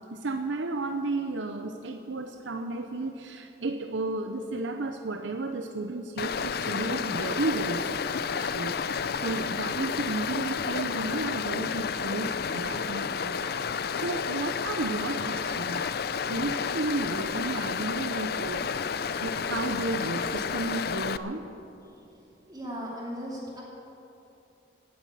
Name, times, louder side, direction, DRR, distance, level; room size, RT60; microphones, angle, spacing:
voice 1, 0.1-15.9 16.3-21.4, right 2 dB, 85° right, 7 dB, 0.7 m, -33 dB
Stream, 6.2-21.2, left 6 dB, 55° left, 0.5 m, -31 dB
voice 2, 22.5-23.6, equal, 20° right, -4 dB, 2.6 m, -37 dB
17.5 x 9.7 x 8.3 m, 2.9 s
head